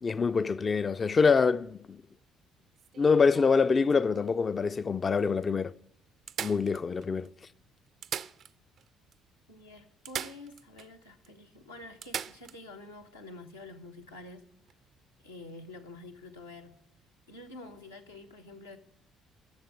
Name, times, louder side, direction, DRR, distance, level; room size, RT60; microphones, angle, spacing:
voice 1, 0.0-2.0 3.0-5.8 6.4-7.3, left 5 dB, 35° left, 0.3 m, -25 dB
sound 1, 2.8-4.4 5.1-5.2 5.4-5.5 6.3-7.3 7.9-8.9 9.1-9.2 10.1-10.9 11.2-11.3 12.0-12.6 14.6-14.7, right 8 dB, 50° right, 0.4 m, -40 dB
voice 2, 9.5-14.4 15.2-16.8 17.3-18.8, left 2 dB, 85° left, 0.9 m, -48 dB
11.5 x 6.9 x 8.4 m
figure-of-eight pair, 50°, 0 cm